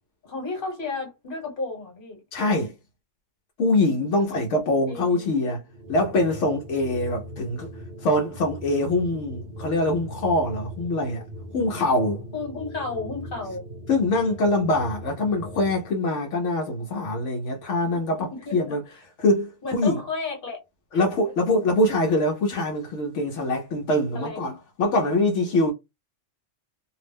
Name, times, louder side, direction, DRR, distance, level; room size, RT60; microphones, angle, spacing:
voice 1, 0.2-2.2 4.2-4.4 4.9-5.4 12.3-13.7 18.3-18.7 19.6-20.6 20.9-21.0 24.1-24.4, left 3 dB, 45° left, 1.3 m, -33 dB
voice 2, 2.3-2.7 3.6-5.6 5.9-7.7 8.0-11.3 11.5-12.2 13.9-18.8 19.2-20.0 20.9-25.7, left 2 dB, 75° left, 0.9 m, -24 dB
sound 1, 5.7-15.9, equal, 45° right, 0.8 m, -40 dB
2.6 x 2.0 x 3.3 m
omnidirectional pair, 1.2 m